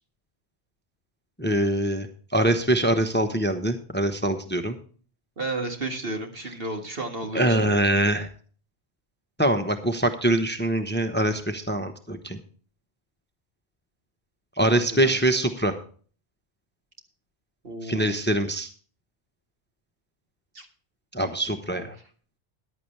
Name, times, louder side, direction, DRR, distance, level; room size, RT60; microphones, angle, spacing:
voice 1, 1.4-2.1 2.3-4.8 7.3-8.3 9.4-12.4 14.6-15.7 17.8-18.7 21.1-21.9, right 1 dB, 10° left, 7 dB, 0.9 m, -23 dB
voice 2, 5.4-7.6 14.7-15.2 17.6-18.2 20.5-20.7 21.7-21.9, right 2 dB, 60° right, 4 dB, 2.1 m, -33 dB
14.5 x 11.0 x 3.3 m, 0.43 s
omnidirectional pair, 1.1 m